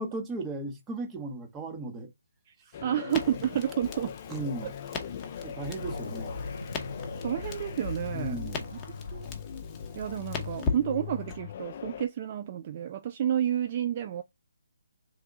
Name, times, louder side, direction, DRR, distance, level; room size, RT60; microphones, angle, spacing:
voice 1, 0.0-2.1 4.3-4.7 5.4-6.4 8.1-8.7, right 2 dB, 15° right, 1.0 m, -36 dB
sound 1, 2.7-12.1, left 9 dB, 40° left, 0.5 m, -41 dB
voice 2, 2.8-4.1 4.6-4.7 7.2-8.4 9.1-9.3 10.0-14.2, right 10 dB, 35° right, 0.3 m, -30 dB
Crackle, 3.1-11.4, left 5 dB, 20° left, 0.9 m, -39 dB
sound 2, 5.2-10.8, left 2 dB, 90° left, 0.7 m, -42 dB
3.5 x 3.5 x 3.9 m
figure-of-eight pair, 145°, 0 cm